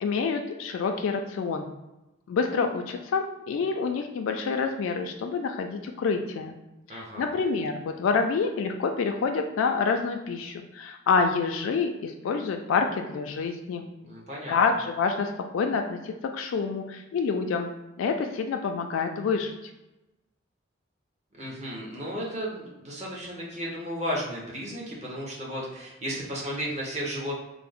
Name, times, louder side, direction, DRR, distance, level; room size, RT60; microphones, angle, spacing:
voice 1, 0.0-1.7 2.3-6.6 6.9-13.9 14.5-17.7 18.0-19.5, left 5 dB, 90° left, 5 dB, 0.3 m, -27 dB
voice 2, 6.9-7.3 14.0-14.6 21.4-27.3, equal, 35° right, -3 dB, 0.8 m, -34 dB
3.3 x 2.0 x 3.5 m, 0.98 s
head